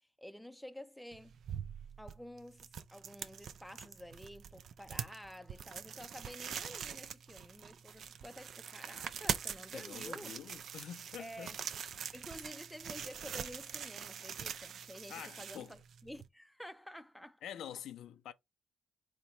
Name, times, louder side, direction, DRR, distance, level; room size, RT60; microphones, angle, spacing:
voice 1, 0.2-1.4 2.0-10.4 11.2-11.6 12.1-17.4, equal, 5° left, 0.5 m, -50 dB
sound 1, 1.1-16.3, right 8 dB, 60° right, 0.4 m, -44 dB
voice 2, 9.7-11.6 15.1-15.7 17.4-18.3, left 10 dB, 75° left, 0.5 m, -47 dB
4.4 x 2.2 x 4.0 m
cardioid pair, 90°, 0 cm